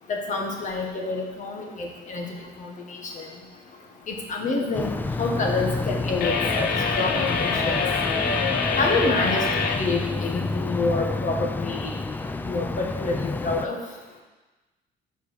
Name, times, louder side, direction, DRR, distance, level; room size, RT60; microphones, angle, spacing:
voice 1, 0.1-2.3 2.6-2.7 4.3-4.9 5.2-6.7 7.0-7.8 8.8-9.4 9.7-11.9 12.5-13.8, left 3 dB, 50° left, 1 dB, 1.5 m, -27 dB
sound 1, 4.7-13.7, left 3 dB, 10° left, 0.3 m, -30 dB
sound 2, 6.2-9.8, left 4 dB, 65° left, 0.8 m, -25 dB
10.0 x 4.8 x 4.8 m, 1.2 s
cardioid pair, 110°, 17 cm